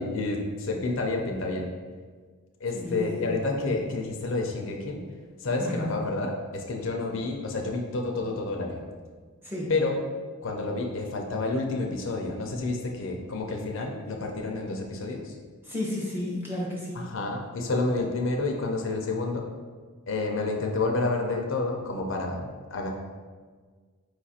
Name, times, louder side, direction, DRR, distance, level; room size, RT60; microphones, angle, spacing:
voice 1, 0.0-1.7 2.6-5.0 5.4-8.8 9.7-10.0 10.4-15.3 17.0-19.4 20.1-22.9, left 3 dB, 55° left, 2 dB, 0.5 m, -29 dB
voice 2, 2.7-3.3 5.6-6.0 9.4-9.7 15.6-17.1, left 1 dB, 10° right, -4 dB, 0.7 m, -32 dB
4.6 x 2.4 x 4.1 m, 1.5 s
head